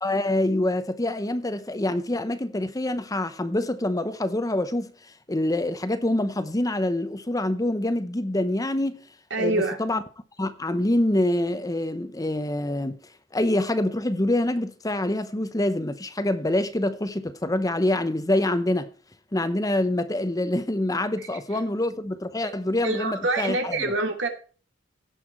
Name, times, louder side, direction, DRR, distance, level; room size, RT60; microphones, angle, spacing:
voice 1, 0.0-4.9 5.3-9.0 9.4-10.0 10.4-13.0 13.3-18.9 19.3-23.9, left 1 dB, 20° left, 0.8 m, -26 dB
voice 2, 9.3-9.8 22.8-24.3, right 2 dB, 80° right, 2.9 m, -25 dB
16.5 x 5.8 x 4.4 m
head